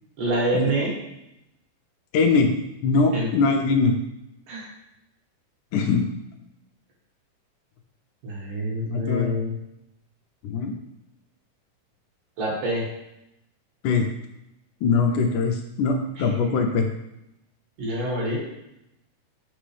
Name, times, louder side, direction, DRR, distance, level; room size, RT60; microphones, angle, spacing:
voice 1, 0.2-0.9 3.1-3.3 4.5-4.7 8.2-9.5 12.4-12.9 16.2-16.6 17.8-18.4, right 1 dB, 75° right, -3 dB, 3.3 m, -26 dB
voice 2, 2.1-2.5 2.8-4.0 5.7-6.1 8.9-9.4 10.4-10.8 13.8-14.1 14.8-16.9, left 4 dB, 75° left, 3 dB, 2.0 m, -21 dB
7.2 x 6.0 x 3.3 m, 0.86 s
omnidirectional pair, 3.9 m